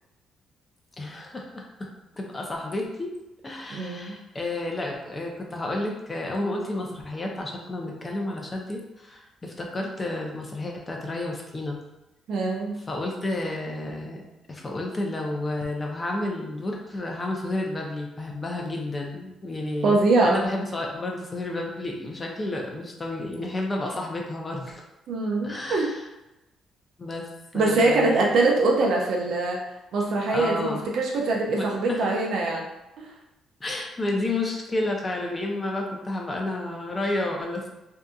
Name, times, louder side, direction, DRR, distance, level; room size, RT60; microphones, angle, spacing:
voice 1, 1.0-1.9 2.2-3.1 3.4-11.8 12.9-14.2 14.5-24.8 25.4-26.1 27.0-28.3 30.3-30.9 31.6-32.1 33.6-37.7, left 2 dB, 25° left, 0 dB, 0.6 m, -31 dB
voice 2, 3.7-4.2 12.3-12.8 19.8-20.4 25.1-25.9 27.5-29.7 29.9-32.7 33.0-33.1, right 2 dB, 70° right, -1 dB, 0.6 m, -23 dB
2.7 x 2.5 x 2.3 m, 0.97 s
cardioid pair, 90°, 0 cm